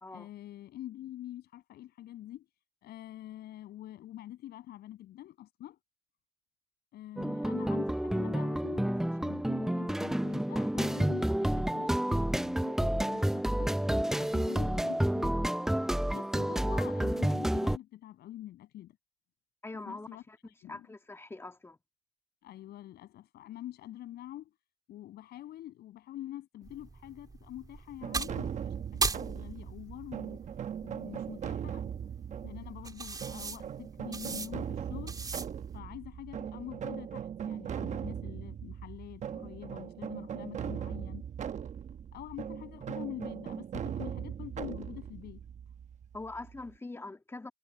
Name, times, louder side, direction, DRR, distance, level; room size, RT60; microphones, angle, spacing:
voice 1, 0.1-2.5 2.8-5.8 6.9-13.8 14.2-15.6 16.1-19.0 19.8-20.9 22.4-24.5 24.9-30.5 30.8-31.8 32.4-35.2 35.7-41.2 42.1-45.4, left 13 dB, 70° left, 6.8 m, -45 dB
sound 1, 7.2-17.8, right 1 dB, 5° right, 0.5 m, -30 dB
voice 2, 19.6-20.4 20.7-21.8 46.1-47.5, left 2 dB, 15° left, 2.0 m, -43 dB
sound 2, 26.6-35.8, right 4 dB, 20° right, 4.1 m, -40 dB
sound 3, 28.0-46.7, right 8 dB, 45° right, 1.1 m, -39 dB
cardioid pair, 110°, 17 cm